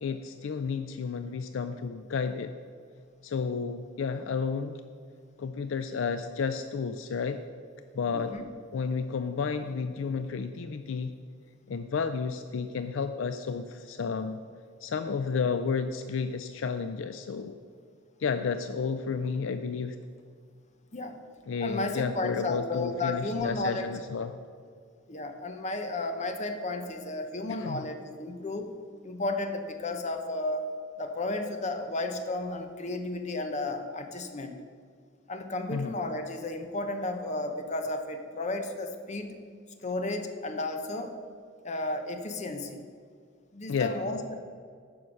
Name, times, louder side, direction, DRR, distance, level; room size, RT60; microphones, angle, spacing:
voice 1, 0.0-2.5 3.2-4.8 5.4-7.4 7.9-8.4 8.7-11.2 11.7-14.4 14.8-17.6 18.2-20.0 21.5-24.4 27.5-27.9 35.7-36.0 43.7-44.0, left 5 dB, 70° left, 9 dB, 0.4 m, -31 dB
voice 2, 8.1-8.5 20.9-21.2 21.6-23.9 25.1-28.7 29.0-30.7 31.0-34.6 35.3-39.4 39.8-41.1 41.6-42.8 43.5-44.4, left 2 dB, 35° left, 6 dB, 0.8 m, -33 dB
9.5 x 5.7 x 6.4 m, 2.1 s
head